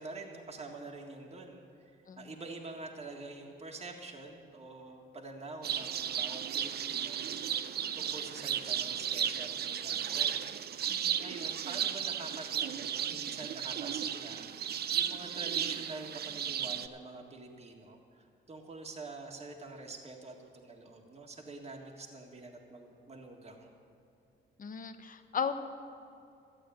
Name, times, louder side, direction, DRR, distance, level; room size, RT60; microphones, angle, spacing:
voice 1, 0.0-7.6 7.9-10.4 10.9-23.7, right 3 dB, 30° right, 0 dB, 1.7 m, -46 dB
sound 1, 5.6-16.9, right 9 dB, 55° right, 0.6 m, -34 dB
voice 2, 10.9-11.2 24.6-25.5, left 7 dB, 45° left, 9 dB, 1.0 m, -36 dB
13.0 x 8.3 x 9.0 m, 2.6 s
cardioid pair, 90°, 20 cm